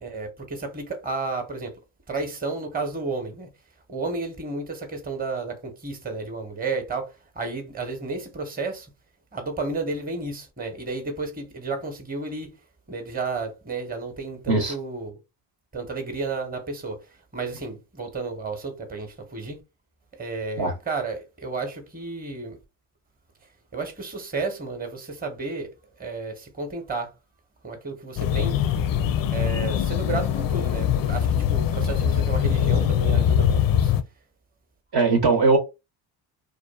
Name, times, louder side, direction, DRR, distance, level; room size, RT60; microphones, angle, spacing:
voice 1, 0.0-1.7 2.1-3.5 3.9-8.9 9.3-12.5 12.9-15.2 15.7-17.0 17.3-19.6 20.2-22.6 23.7-25.7 26.0-27.1 27.6-28.6 29.3-33.9, right 3 dB, 20° right, 0.9 m, -32 dB
sound 1, 28.2-34.0, left 9 dB, 45° left, 0.4 m, -22 dB
voice 2, 34.9-35.6, right 3 dB, 50° right, 0.8 m, -19 dB
2.5 x 2.3 x 2.3 m
supercardioid pair, 70°, 49 cm